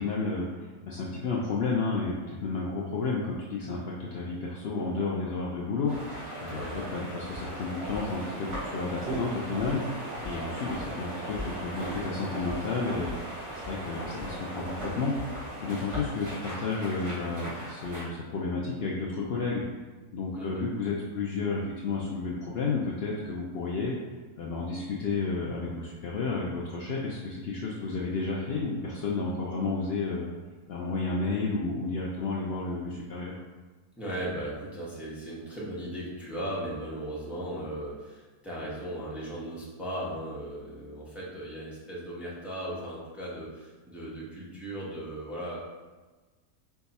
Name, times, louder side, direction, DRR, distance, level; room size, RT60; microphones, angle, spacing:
voice 1, 0.0-19.6 20.1-23.9 24.4-30.3 30.7-33.3, left 3 dB, 85° left, -3 dB, 0.5 m, -32 dB
sound 1, 5.9-18.1, right 1 dB, 75° right, 2.1 m, -38 dB
voice 2, 34.0-45.6, right 1 dB, ahead, -8 dB, 0.8 m, -37 dB
4.7 x 2.3 x 4.0 m, 1.3 s
omnidirectional pair, 1.7 m